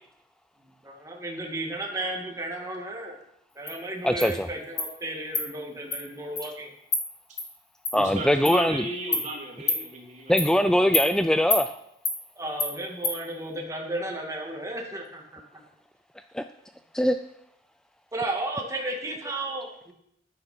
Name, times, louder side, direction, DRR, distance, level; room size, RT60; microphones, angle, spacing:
voice 1, 0.6-3.2 3.6-6.7 12.4-15.4 18.1-19.9, right 2 dB, 20° right, 0 dB, 2.1 m, -34 dB
Insect, 3.7-3.8 4.2-4.3 4.8-4.9 5.3-5.5 5.9-6.0 6.4-6.5 6.9-7.0 7.4-7.5 7.8-7.9 8.4-8.6 9.1-9.2 9.7-9.8 10.4-10.5 10.9-11.1 11.5-11.6 12.0-12.2 12.6-12.7 13.0-13.2, left 3 dB, 20° left, 2.2 m, -26 dB
voice 2, 4.0-4.5 7.9-8.8 10.3-11.8 16.3-16.4 16.9-17.2, equal, 5° left, 9 dB, 0.3 m, -22 dB
voice 3, 8.0-10.3, right 2 dB, 45° right, -1 dB, 3.1 m, -35 dB
10.0 x 9.6 x 6.0 m, 0.76 s
head